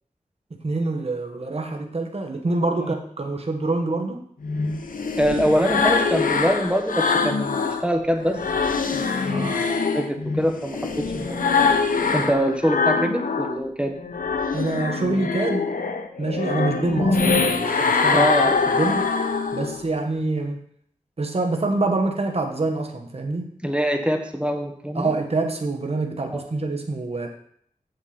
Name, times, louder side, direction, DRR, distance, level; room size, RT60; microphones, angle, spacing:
voice 1, 0.5-4.2 9.3-9.6 14.5-15.7 16.2-19.1 19.5-20.6 21.2-23.5 24.9-27.3, right 3 dB, 45° right, 4 dB, 1.2 m, -26 dB
sound 1, 4.4-7.8 8.2-13.6 14.0-19.8, left 4 dB, 80° left, 0.8 m, -23 dB
voice 2, 5.2-8.4 8.9-9.6 9.8-11.7 12.1-14.0 18.1-18.6 23.6-25.1 26.3-26.5, equal, 10° right, 5 dB, 1.4 m, -24 dB
7.9 x 7.3 x 4.3 m, 0.65 s
cardioid pair, 50°, 14 cm